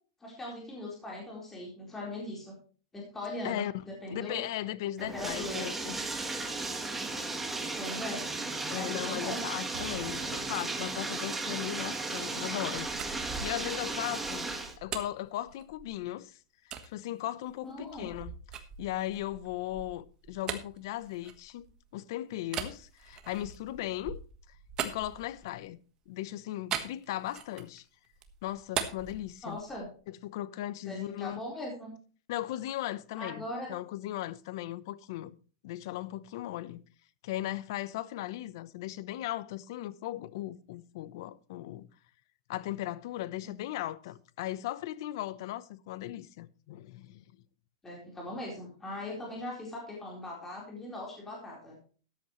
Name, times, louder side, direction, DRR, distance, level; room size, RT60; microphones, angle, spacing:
voice 1, 0.2-2.5 2.9-4.4 5.0-5.6 7.8-8.2 8.6-9.4 17.6-18.1 29.4-29.9 30.8-31.9 33.2-33.7 43.4-43.5 47.8-51.8, left 1 dB, 10° left, 4.2 m, -40 dB
voice 2, 4.1-6.0 8.7-12.9 13.4-14.5 14.8-16.4 16.8-18.3 18.8-21.7 21.9-24.2 24.8-25.8 26.1-27.8 28.4-29.6 30.1-31.4 32.3-35.4 35.6-36.8 37.2-41.9 42.5-47.2, left 14 dB, 50° left, 0.8 m, -37 dB
Bathtub (filling or washing), 5.0-14.8, right 3 dB, 5° right, 1.4 m, -35 dB
sound 1, 9.7-13.0, right 7 dB, 65° right, 1.8 m, -49 dB
sound 2, 12.6-16.1 16.7-16.9 17.5-21.9 22.5-25.7 26.7-27.8 28.1-29.9, right 8 dB, 25° right, 1.4 m, -41 dB
13.5 x 10.5 x 3.1 m
supercardioid pair, 155°, 3 cm